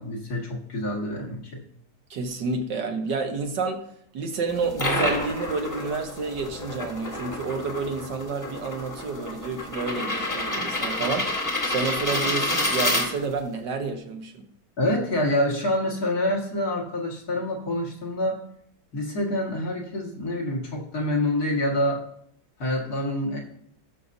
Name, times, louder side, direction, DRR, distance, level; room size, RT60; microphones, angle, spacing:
voice 1, 0.0-1.6 14.8-18.4 18.9-22.0 22.6-23.4, left 1 dB, 50° left, 2.2 m, -26 dB
voice 2, 2.1-14.5, right 4 dB, 65° right, 1.5 m, -30 dB
sound 1, 4.5-13.5, left 1 dB, 10° left, 1.1 m, -29 dB
17.5 x 6.5 x 2.6 m
omnidirectional pair, 2.1 m